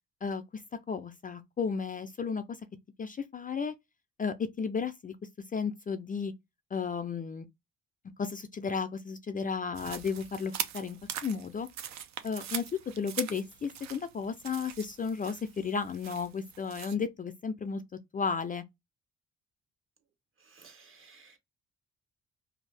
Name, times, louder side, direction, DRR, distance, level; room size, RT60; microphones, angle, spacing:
voice 1, 0.9-2.6 3.0-3.7 4.2-5.2 5.5-6.3 6.7-7.5 8.2-11.0 11.2-11.7 12.2-12.6 13.0-17.8 18.1-18.6, left 5 dB, 30° left, 0.4 m, -33 dB
sound 1, 9.7-16.9, right 9 dB, 65° right, 0.6 m, -41 dB
voice 2, 20.4-21.4, right 4 dB, 45° right, 1.0 m, -56 dB
2.7 x 2.4 x 3.2 m
cardioid pair, 90°, 30 cm